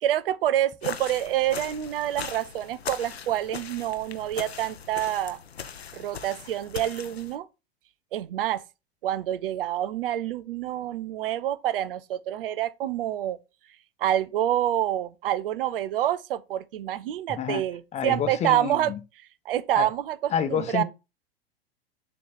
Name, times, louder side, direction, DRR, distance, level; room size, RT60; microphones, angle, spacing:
voice 1, 0.0-5.4 5.9-7.5 8.1-8.6 9.0-13.4 14.0-18.9 19.5-20.8, right 12 dB, 65° right, 0.7 m, -27 dB
sound 1, 0.8-7.4, left 7 dB, 90° left, 0.8 m, -40 dB
voice 2, 17.9-19.0 19.8-19.9 20.3-20.8, left 8 dB, 20° left, 0.9 m, -28 dB
7.1 x 3.2 x 4.4 m
hypercardioid pair, 100°, 30 cm